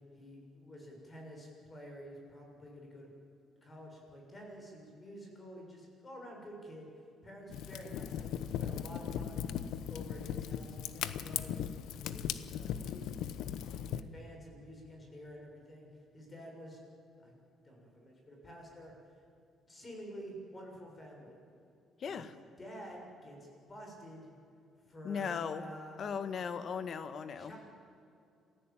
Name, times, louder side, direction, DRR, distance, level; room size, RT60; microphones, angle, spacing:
voice 1, 0.1-3.1 3.6-6.9 7.2-11.7 12.0-13.1 13.9-15.9 16.1-16.8 17.2-17.3 17.6-19.2 19.7-21.4 22.1-22.2 22.6-24.3 24.9-26.0 27.4-27.6, equal, 25° left, 1 dB, 6.6 m, -50 dB
Fire, 7.5-14.0, left 9 dB, 85° left, 0.9 m, -38 dB
voice 2, 22.0-22.3 25.0-25.7 26.0-27.5, left 6 dB, 45° left, 12 dB, 1.4 m, -37 dB
27.5 x 15.5 x 8.9 m, 2.6 s
cardioid pair, 135°, 0 cm